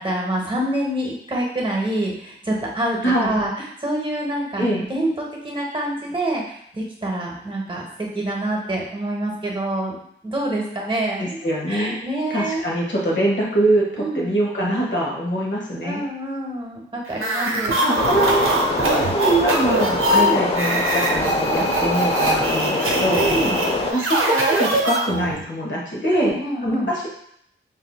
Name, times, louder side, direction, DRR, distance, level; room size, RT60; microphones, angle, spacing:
voice 1, 0.0-3.5 3.8-9.9 10.2-11.4 11.7-12.7 14.0-14.4 15.8-17.8 18.8-19.1 20.1-20.4 23.1-23.6 26.1-26.9, right 1 dB, 25° right, -2 dB, 1.0 m, -26 dB
voice 2, 3.0-3.3 4.6-4.9 11.2-11.9 12.3-13.9 14.1-16.0 17.4-18.5 19.1-23.3 23.9-26.4 26.6-27.1, right 1 dB, 60° left, -3 dB, 1.0 m, -23 dB
sound 1, 17.1-25.4, right 2 dB, 75° right, 0.6 m, -22 dB
sound 2, 17.9-23.9, left 2 dB, 30° left, 0.5 m, -24 dB
3.7 x 2.7 x 2.2 m, 0.69 s
cardioid pair, 50°, 21 cm